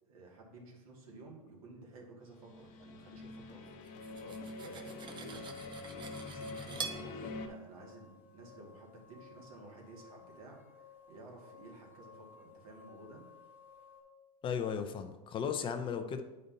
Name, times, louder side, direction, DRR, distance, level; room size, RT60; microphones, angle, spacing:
voice 1, 0.0-5.4 6.1-13.2, right 2 dB, 80° right, -1 dB, 1.9 m, -54 dB
sound 1, 2.4-7.5, left 3 dB, 45° left, 1.0 m, -45 dB
Cutlery silverware, 3.8-7.0, right 6 dB, 25° right, 0.6 m, -45 dB
sound 2, 5.6-14.0, left 6 dB, 10° right, 1.1 m, -58 dB
voice 2, 14.4-16.2, left 7 dB, 30° left, 8 dB, 0.6 m, -35 dB
8.4 x 5.2 x 2.7 m, 1.1 s
supercardioid pair, 120°, 18 cm